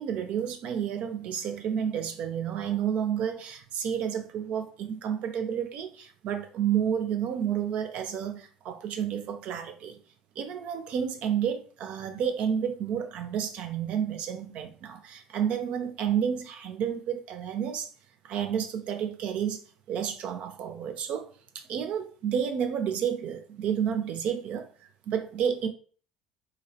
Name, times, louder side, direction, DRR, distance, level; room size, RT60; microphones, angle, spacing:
voice 1, 0.0-10.0 10.4-17.9 18.2-19.6 19.9-21.3 21.5-24.7 25.1-25.7, right 8 dB, 55° right, 0.4 m, -30 dB
2.8 x 2.0 x 2.7 m
hypercardioid pair, 65°, 2 cm